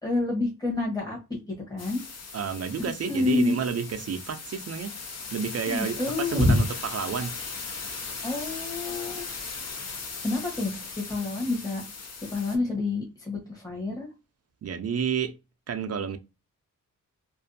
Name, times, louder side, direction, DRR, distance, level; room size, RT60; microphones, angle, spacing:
voice 1, 0.0-1.2 1.5-2.0 2.8-3.6 5.6-6.6 8.2-9.3 10.2-11.8 12.3-14.1, left 2 dB, 10° left, 1.0 m, -27 dB
sound 1, 1.8-12.6, left 4 dB, 50° left, 0.6 m, -38 dB
voice 2, 2.3-4.9 5.3-7.4 14.6-15.3 15.7-16.2, right 7 dB, 50° right, 0.4 m, -30 dB
2.5 x 2.3 x 2.6 m
wide cardioid pair, 100°, 33 cm